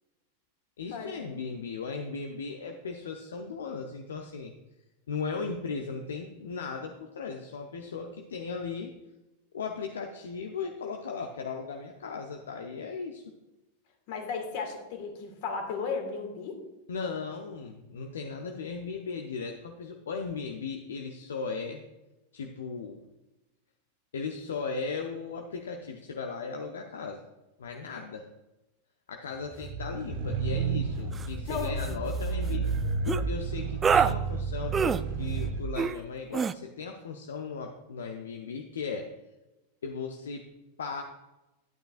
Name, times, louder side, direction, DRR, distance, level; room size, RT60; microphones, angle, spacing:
voice 1, 0.8-4.5 5.1-8.9 9.5-13.2 16.9-21.8 22.3-23.0 24.1-27.2 27.6-28.3 29.1-32.7 33.1-39.1 39.8-40.5 40.8-41.0, left 5 dB, 65° left, 4 dB, 0.7 m, -37 dB
voice 2, 14.1-16.6 31.5-31.7, left 5 dB, 50° left, 4 dB, 2.0 m, -34 dB
sound 1, 29.5-35.6, right 5 dB, 50° right, 1.0 m, -31 dB
sound 2, 31.1-31.3 31.6-31.9 33.1-33.2 33.8-34.1 34.7-35.0 35.8-36.0 36.3-36.5, right 6 dB, 20° right, 0.3 m, -25 dB
12.0 x 8.8 x 2.5 m, 1.0 s
figure-of-eight pair, 90°, 0 cm